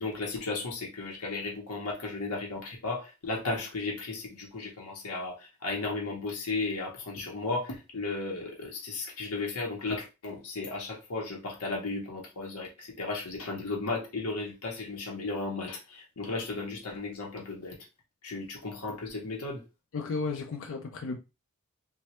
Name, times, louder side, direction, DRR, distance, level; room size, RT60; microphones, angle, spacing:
voice 1, 0.0-17.8 18.2-19.6, left 3 dB, 85° left, 0.8 m, -35 dB
voice 2, 19.9-21.2, left 4 dB, 60° left, 0.4 m, -33 dB
3.1 x 2.2 x 2.9 m
head